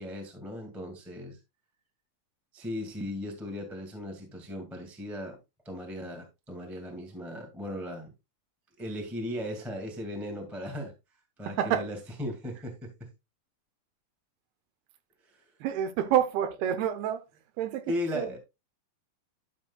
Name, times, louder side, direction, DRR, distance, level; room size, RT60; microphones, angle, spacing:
voice 1, 0.0-1.4 2.5-5.4 5.6-8.1 8.8-10.9 11.4-12.9 17.9-18.4, left 1 dB, ahead, 0.8 m, -37 dB
voice 2, 15.6-17.2 17.6-18.3, right 10 dB, 80° right, 2.9 m, -28 dB
12.0 x 6.4 x 2.3 m
omnidirectional pair, 4.5 m